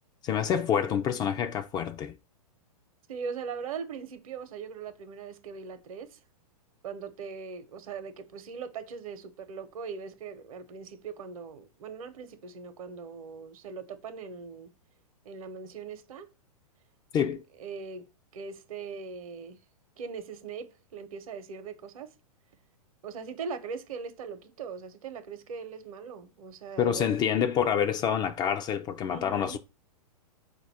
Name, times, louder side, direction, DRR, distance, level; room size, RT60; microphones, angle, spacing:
voice 1, 0.2-2.2 17.1-17.4 26.8-29.6, left 8 dB, 20° left, 0.3 m, -27 dB
voice 2, 3.1-6.2 6.8-14.7 15.2-16.3 17.6-19.6 20.0-22.1 23.0-27.1 29.1-29.6, right 5 dB, 65° right, 0.9 m, -40 dB
4.2 x 2.5 x 4.1 m
hypercardioid pair, 115°, 19 cm